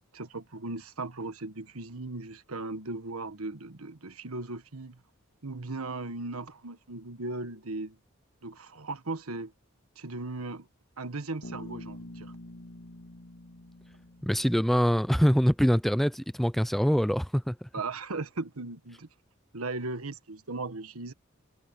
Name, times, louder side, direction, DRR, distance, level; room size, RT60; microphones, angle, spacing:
voice 1, 0.1-5.0 5.4-8.0 8.4-9.5 10.0-10.7 11.0-12.3 17.7-19.1 19.5-21.1, right 3 dB, 90° right, 1.5 m, -37 dB
Bass guitar, 11.4-15.3, left 1 dB, 80° left, 2.7 m, -46 dB
voice 2, 14.2-17.7, equal, ahead, 0.4 m, -24 dB
head